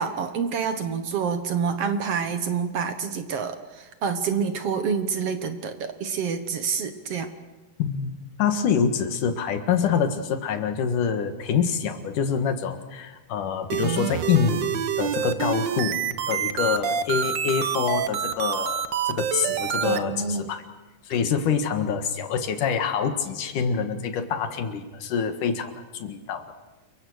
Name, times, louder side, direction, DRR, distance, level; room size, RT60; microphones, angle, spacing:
voice 1, 0.0-7.3 19.8-20.5, right 6 dB, 60° right, 8 dB, 2.1 m, -27 dB
voice 2, 7.8-20.6 21.1-26.5, left 7 dB, 85° left, 7 dB, 3.2 m, -26 dB
sound 1, 13.7-20.0, right 8 dB, 75° right, 1.0 m, -27 dB
29.0 x 23.5 x 6.4 m, 1.2 s
omnidirectional pair, 3.6 m